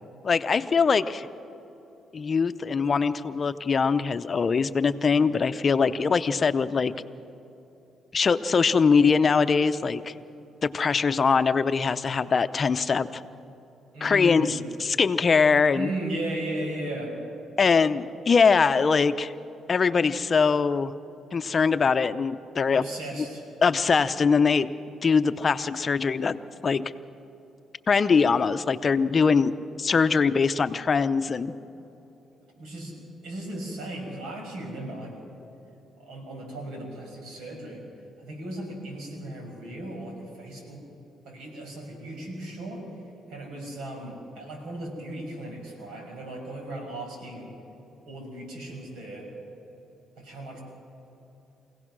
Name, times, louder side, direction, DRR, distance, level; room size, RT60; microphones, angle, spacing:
voice 1, 0.2-1.3 2.1-6.9 8.1-10.1 10.6-13.2 14.0-15.9 17.6-19.3 19.7-20.9 21.3-22.8 23.2-23.3 23.6-24.7 25.0-26.9 27.9-29.5 29.8-31.5, left 5 dB, 40° left, 12 dB, 0.6 m, -22 dB
voice 2, 13.9-14.5 15.6-17.1 22.7-23.4 32.6-32.9 33.2-35.1 36.0-37.8 38.2-40.8 41.2-42.8 43.3-47.5 48.1-49.3 50.2-50.6, right 1 dB, 85° right, 1 dB, 6.0 m, -36 dB
24.5 x 17.0 x 6.2 m, 3.0 s
cardioid pair, 90°, 0 cm